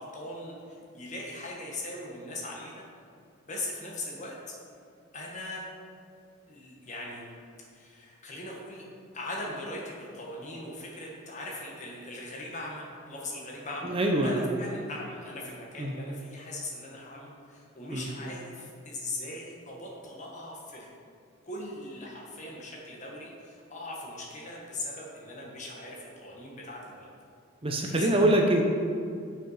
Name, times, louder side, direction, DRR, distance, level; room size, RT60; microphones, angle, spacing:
voice 1, 0.0-2.8 3.5-4.6 5.1-5.6 6.5-7.3 7.7-8.8 9.1-14.0 14.2-20.9 21.4-27.1 28.0-28.1, left 1 dB, 35° left, -3 dB, 1.5 m, -40 dB
voice 2, 13.8-14.5 15.8-15.9 17.9-18.1 27.6-28.6, right 1 dB, 25° right, 1 dB, 0.7 m, -24 dB
6.9 x 6.0 x 5.7 m, 2.4 s
head